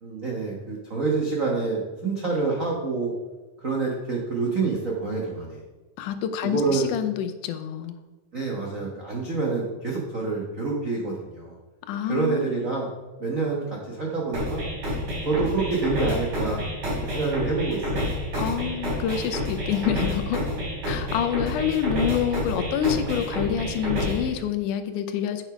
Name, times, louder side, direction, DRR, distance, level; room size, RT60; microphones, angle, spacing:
voice 1, 0.0-3.2 3.6-5.6 6.4-6.8 8.3-11.5 12.1-12.9 13.2-14.6 15.2-18.1, right 4 dB, 70° right, -2 dB, 0.7 m, -27 dB
voice 2, 6.0-8.0 11.9-12.5 18.4-20.5 20.9-25.4, left 9 dB, 85° left, 8 dB, 2.2 m, -27 dB
sound 1, 14.3-24.3, equal, 45° right, 3.8 m, -29 dB
8.8 x 6.3 x 5.0 m, 1.2 s
omnidirectional pair, 3.5 m